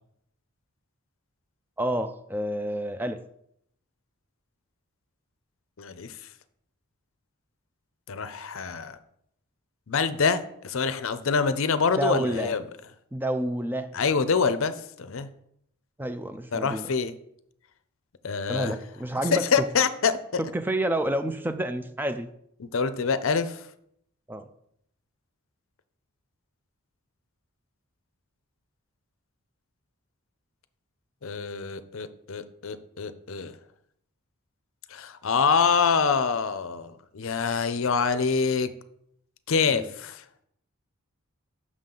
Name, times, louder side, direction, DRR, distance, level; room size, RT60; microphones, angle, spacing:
voice 1, 1.8-3.2 12.0-12.5 13.1-13.9 16.0-16.9 18.5-19.4 20.4-22.3 24.3-24.5 39.7-39.9, right 1 dB, 10° right, 9 dB, 0.4 m, -29 dB
voice 2, 5.8-6.2 8.1-9.0 9.9-12.6 13.9-15.3 16.5-17.1 18.2-18.7 19.3-20.2 22.6-23.7 31.2-33.6 34.9-38.7 39.5-40.2, left 5 dB, 65° left, 12 dB, 0.6 m, -26 dB
7.3 x 6.2 x 3.8 m, 0.73 s
head